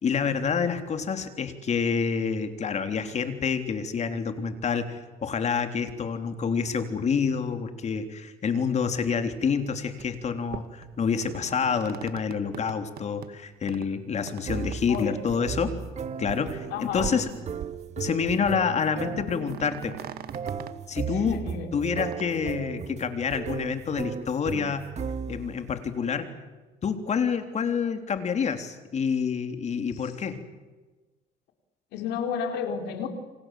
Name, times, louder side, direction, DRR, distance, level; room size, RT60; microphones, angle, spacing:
voice 1, 0.0-4.8 5.2-15.7 16.2-17.3 18.0-20.0 20.9-21.4 21.7-24.9 25.3-26.3 26.8-30.4, left 6 dB, 40° left, 7 dB, 3.6 m, -28 dB
sound 1, 9.9-10.1 10.5-13.3 13.7-13.9 14.3-14.4 14.7-15.0 15.3-15.4 15.9-16.0 16.2-16.5 16.9-17.8 18.1-18.5 18.8-18.9 19.1-20.7 21.9-22.2, right 11 dB, 65° right, 1.8 m, -41 dB
sound 2, 14.5-25.6, right 6 dB, 40° right, 1.9 m, -36 dB
voice 2, 14.9-15.2 16.7-17.2 21.1-21.7 29.9-30.2 31.9-33.1, left 7 dB, 90° left, 5 dB, 4.6 m, -32 dB
28.5 x 27.0 x 7.8 m, 1.3 s
cardioid pair, 110°, 17 cm